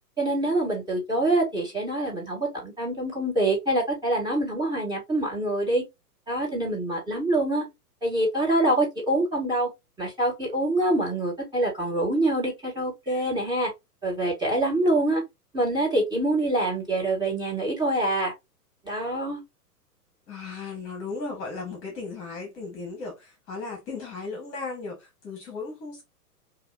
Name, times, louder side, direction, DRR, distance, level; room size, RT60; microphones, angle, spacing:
voice 1, 0.2-5.8 6.3-7.7 8.0-9.7 10.0-13.7 14.0-15.2 15.5-18.3 18.8-19.4, right 1 dB, 10° right, 2.1 m, -25 dB
voice 2, 20.3-26.0, left 4 dB, 30° left, 1.7 m, -36 dB
5.3 x 2.7 x 2.7 m
hypercardioid pair, 125°, 47 cm